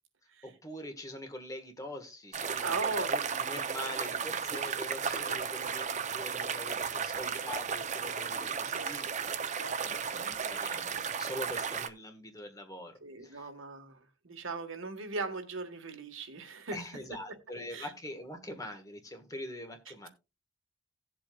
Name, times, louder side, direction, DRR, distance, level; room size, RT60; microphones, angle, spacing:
voice 1, 0.4-5.8 6.1-9.1 9.5-13.5 16.7-20.1, left 1 dB, 15° left, 1.5 m, -44 dB
sound 1, 2.3-11.9, right 6 dB, 35° right, 0.6 m, -34 dB
voice 2, 2.6-3.1 5.0-5.4 8.6-8.8 9.6-10.0 13.0-16.8 17.7-17.9, right 4 dB, 75° right, 1.5 m, -39 dB
17.0 x 7.6 x 2.3 m
head